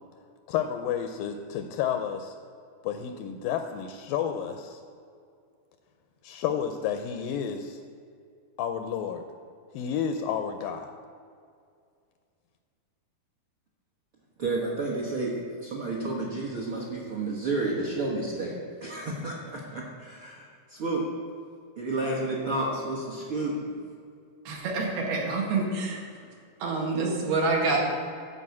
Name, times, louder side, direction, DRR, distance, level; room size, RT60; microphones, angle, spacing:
voice 1, 0.5-2.3 2.8-4.8 6.2-7.8 8.6-9.2 9.7-10.9, left 8 dB, 85° left, 7 dB, 2.1 m, -31 dB
voice 2, 14.4-18.5 18.8-21.1 21.8-23.8, right 2 dB, 55° right, -4 dB, 1.5 m, -31 dB
voice 3, 24.5-26.0 26.6-27.8, right 3 dB, 75° right, -1 dB, 3.6 m, -27 dB
12.5 x 5.2 x 8.3 m, 2.3 s
omnidirectional pair, 4.4 m